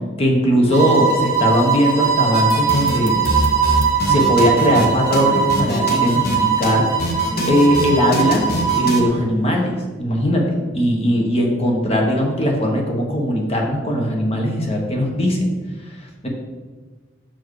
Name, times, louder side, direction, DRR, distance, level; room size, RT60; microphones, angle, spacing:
voice 1, 0.2-3.2 4.1-6.9 7.5-8.5 8.8-15.5 16.2-16.3, equal, 30° left, 0 dB, 1.2 m, -19 dB
sound 1, 0.7-9.1, right 6 dB, 15° right, 1.6 m, -20 dB
sound 2, 2.3-4.9 5.1-5.2 5.5-6.4 6.6-6.7 7.0-9.0, left 1 dB, 55° left, 0.9 m, -24 dB
6.0 x 4.6 x 4.7 m, 1.4 s
head